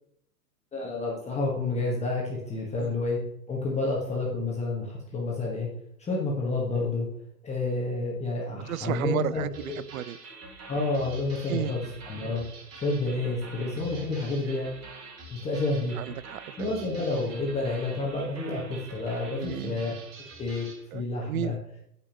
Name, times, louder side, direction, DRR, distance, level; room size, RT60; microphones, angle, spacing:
voice 1, 0.7-3.2 3.5-5.7 6.0-7.1 7.4-9.8 10.7-12.4 12.7-14.7 15.3-16.0 16.6-19.9 20.4-20.7 20.9-21.6, left 3 dB, 15° left, -2 dB, 1.6 m, -29 dB
voice 2, 8.7-10.2 11.5-11.8 16.0-16.9 19.3-19.8 20.9-21.6, right 12 dB, 60° right, 17 dB, 0.6 m, -33 dB
sound 1, 9.5-20.8, right 3 dB, 30° right, 2.1 m, -46 dB
15.0 x 5.4 x 3.0 m, 0.72 s
figure-of-eight pair, 115°, 48 cm